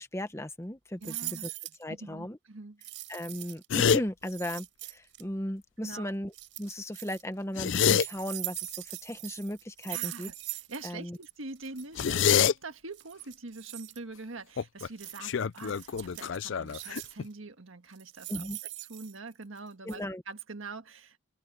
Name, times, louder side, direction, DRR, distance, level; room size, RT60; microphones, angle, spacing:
voice 1, 0.0-1.5 1.8-2.4 3.1-6.3 6.6-10.3 10.8-11.2 18.3-18.6 19.8-20.2, left 1 dB, 15° left, 1.1 m, -36 dB
sound 1, 1.0-1.8 2.8-3.7 4.2-5.2 6.3-7.2 7.6-10.9 11.1-11.3 11.6-11.8 12.9-14.0 15.0-15.2 15.6-16.3 16.7-17.3 17.9-19.6 19.9-20.0, right 17 dB, 70° right, 4.7 m, -41 dB
voice 2, 1.0-1.5 1.9-2.8 5.8-6.1 9.9-18.5 18.9-21.2, right 3 dB, 85° right, 1.7 m, -44 dB
sound 2, 3.7-4.0 7.4-8.1 12.0-12.5 14.6-14.9 15.2-17.3, left 7 dB, 70° left, 0.4 m, -26 dB
open air
head